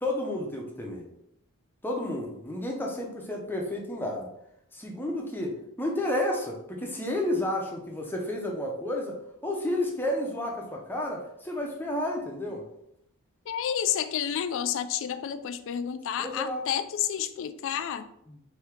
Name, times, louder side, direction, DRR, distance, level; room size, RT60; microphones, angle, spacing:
voice 1, 0.0-1.1 1.8-4.3 4.7-12.6 16.2-16.6 18.3-18.4, left 1 dB, 10° left, 0 dB, 0.6 m, -31 dB
voice 2, 13.5-18.0, left 9 dB, 60° left, 12 dB, 0.3 m, -30 dB
4.5 x 2.7 x 3.5 m, 0.77 s
head